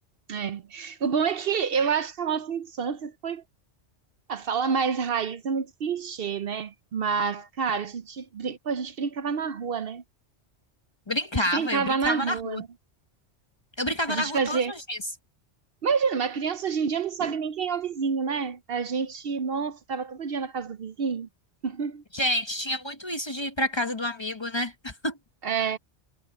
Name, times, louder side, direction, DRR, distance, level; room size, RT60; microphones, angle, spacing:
voice 1, 0.3-3.4 4.3-10.0 11.3-12.7 14.1-14.7 15.8-21.3 21.6-22.0 25.4-25.8, right 6 dB, 60° right, 0.8 m, -28 dB
voice 2, 11.1-12.6 13.8-15.0 22.1-25.2, left 1 dB, 25° left, 0.9 m, -29 dB
omnidirectional pair, 1.2 m